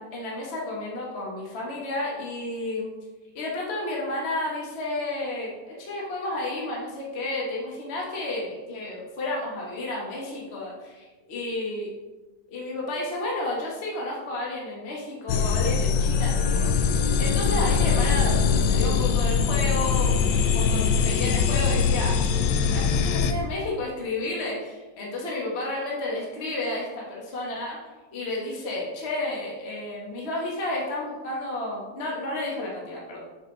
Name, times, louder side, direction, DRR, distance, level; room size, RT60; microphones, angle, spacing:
voice 1, 0.0-2.9 3.3-5.5 5.8-11.9 12.5-22.1 22.7-27.8 28.1-33.2, left 2 dB, 40° left, -3 dB, 1.5 m, -31 dB
sound 1, 15.3-23.3, left 6 dB, 85° left, 1.3 m, -22 dB
7.1 x 5.9 x 3.9 m, 1.2 s
omnidirectional pair, 1.9 m